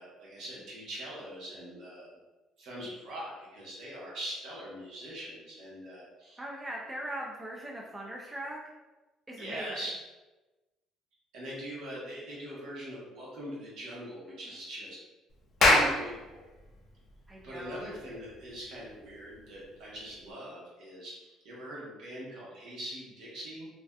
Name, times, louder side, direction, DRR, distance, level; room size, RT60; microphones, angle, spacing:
voice 1, 0.0-2.1 2.6-6.4 9.4-10.0 11.3-15.0 15.6-16.4 17.4-23.7, right 1 dB, 70° right, -5 dB, 0.9 m, -42 dB
voice 2, 6.4-8.6 9.3-9.8 14.3-14.6 17.3-17.9, right 1 dB, 15° right, -3 dB, 0.3 m, -40 dB
Clapping, 15.4-20.3, left 2 dB, 50° left, 0.4 m, -29 dB
2.5 x 2.3 x 2.2 m, 1.1 s
cardioid pair, 115°, 0 cm